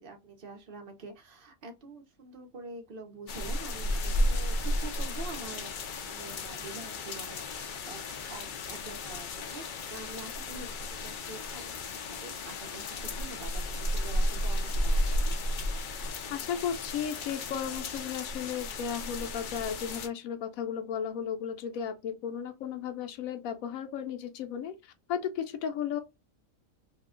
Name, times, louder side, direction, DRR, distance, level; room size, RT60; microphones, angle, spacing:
voice 1, 0.0-9.6 9.9-15.4, right 3 dB, 50° right, 0.7 m, -46 dB
sound 1, 3.3-20.1, left 1 dB, 70° left, 0.4 m, -33 dB
voice 2, 16.3-26.0, left 8 dB, 85° left, 1.0 m, -35 dB
2.7 x 2.2 x 3.6 m
omnidirectional pair, 1.4 m